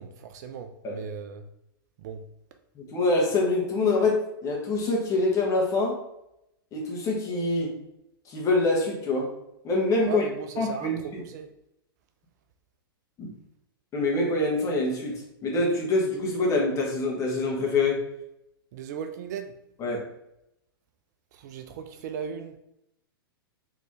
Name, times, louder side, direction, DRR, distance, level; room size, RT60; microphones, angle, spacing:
voice 1, 0.0-1.5 2.0-2.3 10.0-11.5 18.7-19.6 21.3-22.6, right 7 dB, 50° right, 0.4 m, -37 dB
voice 2, 2.7-6.0 6.7-7.8 8.3-9.3 9.6-10.2 10.6-11.2 13.2-13.3 13.9-18.0 19.8-20.1, left 2 dB, 25° left, 1.4 m, -25 dB
4.3 x 3.3 x 3.1 m
figure-of-eight pair, 105°, 12 cm